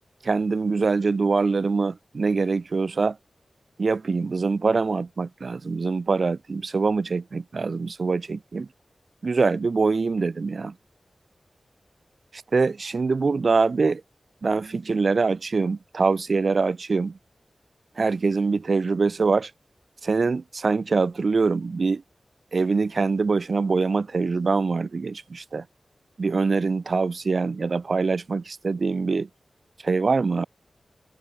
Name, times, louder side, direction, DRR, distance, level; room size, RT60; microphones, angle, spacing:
voice 1, 0.2-3.2 3.8-8.7 9.2-10.7 12.5-14.0 14.4-17.2 18.0-19.5 20.0-22.0 22.5-25.7 26.2-29.3 29.8-30.5, right 4 dB, 60° right, 0.4 m, -24 dB
wide cardioid pair, 80°, 0 cm